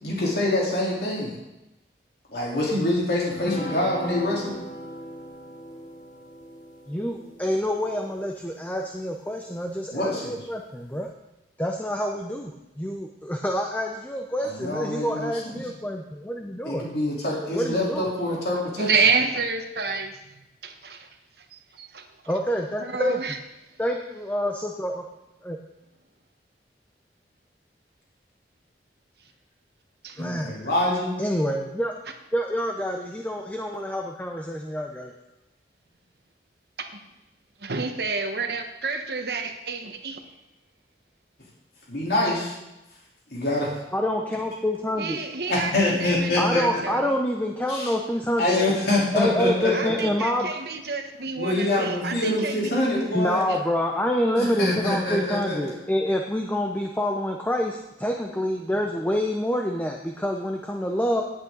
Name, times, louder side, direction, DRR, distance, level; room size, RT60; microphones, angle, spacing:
voice 1, 0.0-1.3 2.3-4.6 9.9-10.3 14.4-15.6 16.7-18.9 30.2-31.2 41.9-42.5 43.3-43.7 45.5-46.8 47.7-47.9 48.4-50.1 51.4-53.5 54.4-55.6, left 1 dB, 65° left, -4 dB, 3.8 m, -25 dB
sound 1, 3.3-9.0, equal, 45° left, 2.0 m, -38 dB
voice 2, 6.9-11.1 11.6-16.9 17.5-18.1 22.3-23.4 23.8-25.0 25.4-25.6 30.2-30.7 31.2-31.9 32.3-35.1 43.9-45.2 46.4-48.7 49.1-50.5 53.1-61.2, equal, 10° left, 2 dB, 0.7 m, -27 dB
voice 3, 18.8-20.2 20.6-21.1 21.5-22.1 22.8-23.4 30.0-30.2 36.8-36.9 37.6-40.2 45.0-47.2 49.7-52.7 53.5-53.6, right 4 dB, 65° right, 5 dB, 1.3 m, -29 dB
17.5 x 8.5 x 4.0 m, 0.95 s
head